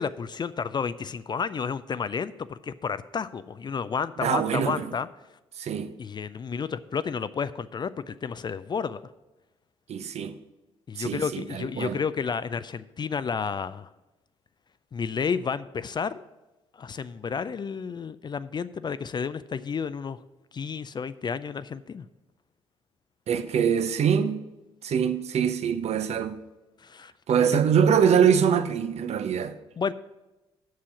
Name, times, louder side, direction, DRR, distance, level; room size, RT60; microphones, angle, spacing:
voice 1, 0.0-5.1 6.0-9.0 10.9-13.9 14.9-16.2 16.7-20.2 20.5-22.0 26.8-27.1 27.5-27.6 29.8-29.9, left 6 dB, 30° left, 0.4 m, -31 dB
voice 2, 4.2-4.9 5.6-5.9 9.9-10.4 11.0-12.0 23.3-24.4 24.8-26.4 27.3-29.5, right 7 dB, 50° right, 0.6 m, -24 dB
7.6 x 7.0 x 5.8 m
hypercardioid pair, 45°, 14 cm